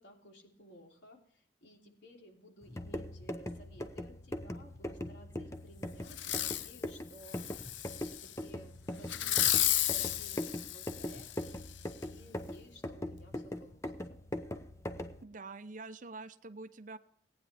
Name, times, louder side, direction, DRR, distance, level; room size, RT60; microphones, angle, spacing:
voice 1, 0.0-7.4 8.0-11.3 12.0-14.2, equal, 70° left, 0 dB, 3.1 m, -56 dB
sound 1, 2.6-15.2, left 1 dB, 15° left, 0.8 m, -41 dB
Fireworks, 6.1-6.7 7.2-8.3 9.1-11.5 12.0-12.1, left 12 dB, 90° left, 0.7 m, -32 dB
voice 2, 15.2-17.0, right 3 dB, 45° right, 12 dB, 0.6 m, -46 dB
18.0 x 9.6 x 3.4 m, 0.65 s
head